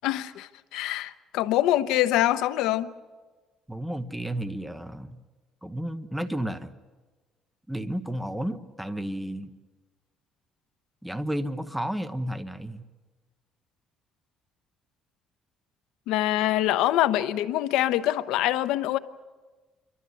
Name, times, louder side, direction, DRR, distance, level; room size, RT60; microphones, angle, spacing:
voice 1, 0.0-2.9 16.1-19.0, left 13 dB, 85° left, 12 dB, 0.9 m, -24 dB
voice 2, 3.7-5.2 5.6-6.7 7.7-9.5 11.0-12.8, right 1 dB, 5° right, 10 dB, 1.0 m, -32 dB
29.5 x 13.0 x 9.6 m, 1.3 s
cardioid pair, 130°, 0 cm